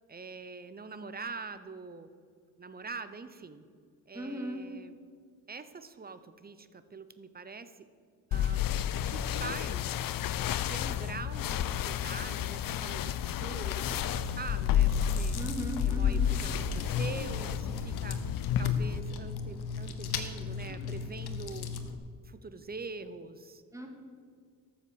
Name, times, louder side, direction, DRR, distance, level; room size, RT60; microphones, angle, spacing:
voice 1, 0.1-2.1 2.6-3.6 4.1-5.0 5.5-7.9 8.3-8.7 9.0-10.1 10.7-15.4 15.9-18.2 18.6-21.8 22.2-23.6, right 4 dB, 25° right, 12 dB, 0.8 m, -44 dB
voice 2, 4.1-4.6 15.3-16.3 23.7-23.9, right 1 dB, 10° right, 2 dB, 2.2 m, -37 dB
sound 1, 8.3-19.0, left 9 dB, 65° left, 0.5 m, -31 dB
Chewing mastication, 13.8-22.0, left 5 dB, 85° left, 1.1 m, -38 dB
13.0 x 7.3 x 7.1 m, 2.1 s
cardioid pair, 90°, 37 cm